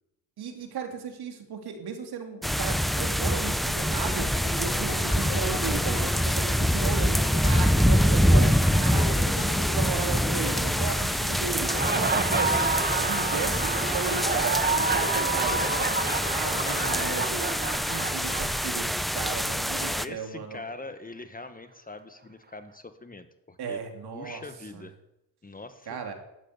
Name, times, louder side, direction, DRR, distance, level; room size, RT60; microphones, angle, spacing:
voice 1, 0.4-4.3 4.5-8.5 8.8-12.6 13.0-16.0 16.3-17.4 17.8-20.6 23.6-24.4 24.7-24.8 25.9-26.1, right 6 dB, 65° right, 4 dB, 3.3 m, -35 dB
sound 1, 2.4-20.1, equal, ahead, 0.6 m, -25 dB
sound 2, 4.0-17.7, left 3 dB, 40° left, 5.6 m, -37 dB
Laughter, 11.5-19.1, right 4 dB, 20° right, 1.3 m, -29 dB
voice 2, 16.6-17.5 19.7-23.8 24.1-24.9 25.4-26.0, left 3 dB, 20° left, 9 dB, 1.4 m, -42 dB
14.0 x 8.4 x 9.7 m, 0.88 s
cardioid pair, 85°, 41 cm